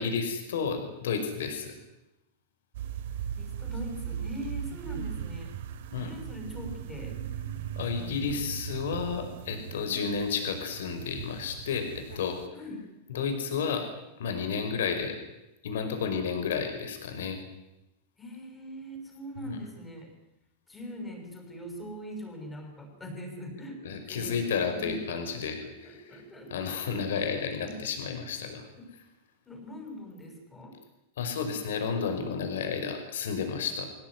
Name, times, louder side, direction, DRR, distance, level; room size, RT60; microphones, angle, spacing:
voice 1, 0.0-1.7 5.9-6.1 7.8-12.4 13.1-13.9 14.2-15.2 15.6-17.4 19.4-19.6 23.8-26.2 26.5-28.7 31.2-33.8, left 6 dB, 85° left, 6 dB, 5.2 m, -31 dB
sound 1, 2.7-12.5, right 9 dB, 60° right, 2.7 m, -38 dB
voice 2, 3.4-5.5 6.0-7.2 7.9-8.5 9.9-10.1 12.5-12.9 18.2-20.1 20.7-25.0 25.6-27.3 27.7-27.8 28.8-28.9 29.5-30.8, equal, 10° left, 3 dB, 6.2 m, -42 dB
24.5 x 18.0 x 9.6 m, 0.95 s
supercardioid pair, 170°, 0 cm